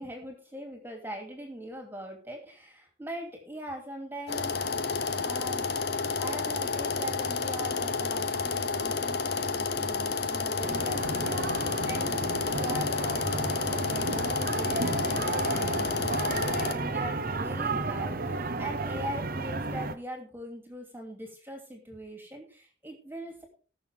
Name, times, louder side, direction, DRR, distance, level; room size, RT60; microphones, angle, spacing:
voice 1, 0.0-4.7 5.2-5.7 6.2-12.2 12.5-13.6 13.9-23.4, equal, 10° right, 2 dB, 2.8 m, -41 dB
sound 1, 4.3-16.7, left 4 dB, 60° left, 1.1 m, -30 dB
sound 2, 10.6-20.0, right 3 dB, 50° right, 0.9 m, -32 dB
19.5 x 6.8 x 3.5 m, 0.38 s
head